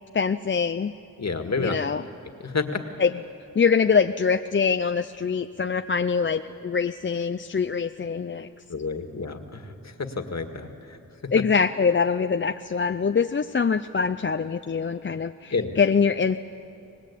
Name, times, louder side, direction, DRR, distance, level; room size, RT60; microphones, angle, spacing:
voice 1, 0.1-0.9 1.6-2.0 3.0-3.1 3.6-8.5 11.3-16.4, left 5 dB, 35° left, 8 dB, 0.5 m, -24 dB
voice 2, 1.2-1.8 2.4-2.8 8.7-11.0 15.5-15.8, left 4 dB, 50° left, 6 dB, 1.9 m, -30 dB
25.5 x 19.5 x 8.4 m, 2.7 s
cardioid pair, 70°, 35 cm